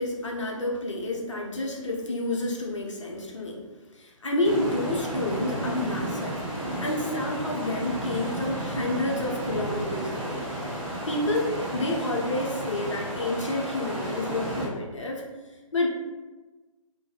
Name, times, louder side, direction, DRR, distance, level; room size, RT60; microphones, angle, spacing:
voice 1, 0.0-3.6 3.9-10.5 11.1-15.2 15.5-15.9, left 2 dB, 60° left, -1 dB, 0.6 m, -29 dB
sound 1, 4.4-14.7, right 1 dB, 5° right, 0.6 m, -32 dB
2.4 x 2.1 x 2.8 m, 1.2 s
figure-of-eight pair, 135°, 18 cm